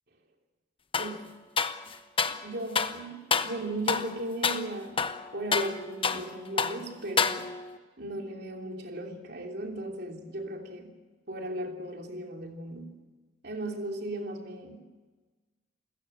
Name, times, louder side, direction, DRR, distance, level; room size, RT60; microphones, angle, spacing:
sound 1, 0.9-1.2 1.6-2.4 2.7-3.0 3.3-3.6 3.9-4.1 4.4-4.7 5.0-6.3 6.6-6.8 7.2-7.7, left 5 dB, 30° left, 0.9 m, -28 dB
voice 1, 0.9-1.3 2.2-7.5 8.0-10.9 11.3-12.9 13.4-14.8, right 1 dB, 60° right, 3 dB, 3.2 m, -36 dB
28.5 x 16.0 x 8.0 m, 1.3 s
head